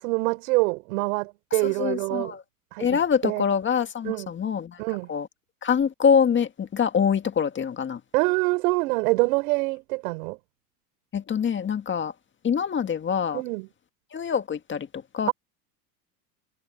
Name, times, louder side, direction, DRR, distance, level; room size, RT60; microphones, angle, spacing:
voice 1, 0.0-2.4 2.7-3.4 4.0-4.3 4.8-5.1 8.1-10.4 13.3-13.7 15.3-15.4, right 25 dB, 65° right, 6.7 m, -25 dB
voice 2, 1.6-2.4 2.8-4.8 5.1-5.3 5.6-8.0 11.1-12.1 12.4-13.4 14.1-14.9 15.1-15.3, left 7 dB, 25° left, 1.8 m, -24 dB
hypercardioid pair, 100°, 46 cm